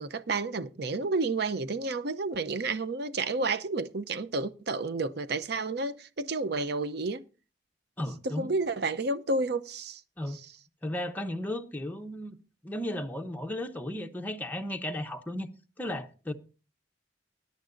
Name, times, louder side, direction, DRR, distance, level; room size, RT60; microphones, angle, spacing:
voice 1, 0.0-7.2 8.2-10.0, right 3 dB, 60° right, 0.7 m, -31 dB
voice 2, 8.0-8.5 10.2-10.4 10.8-12.4 12.6-15.5 15.8-16.3, left 1 dB, 10° left, 0.8 m, -35 dB
20.0 x 10.5 x 2.6 m
head